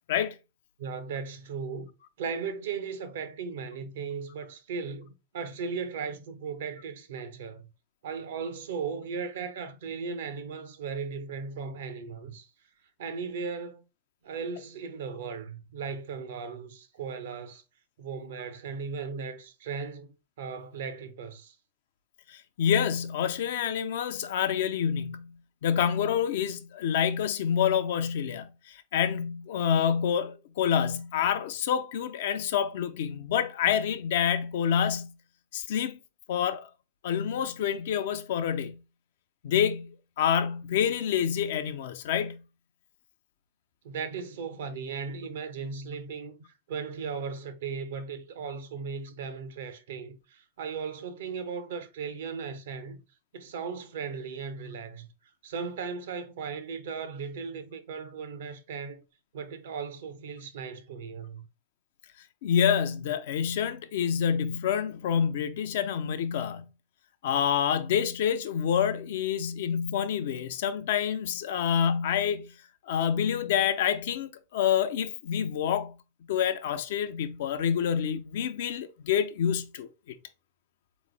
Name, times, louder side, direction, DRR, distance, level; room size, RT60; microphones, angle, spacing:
voice 1, 0.8-1.9 2.2-7.6 8.0-12.5 13.0-13.8 14.2-17.6 18.0-21.5 43.8-53.0 53.3-55.1 55.4-59.0 59.3-61.5, right 5 dB, 60° right, 0.6 m, -37 dB
voice 2, 22.3-25.3 25.6-35.1 35.5-36.0 36.3-36.7 37.0-38.8 39.4-42.4 62.4-66.6 67.2-72.5 72.9-75.9 76.3-79.9, left 8 dB, 55° left, 0.4 m, -27 dB
3.6 x 3.0 x 3.3 m
figure-of-eight pair, 90°, 0 cm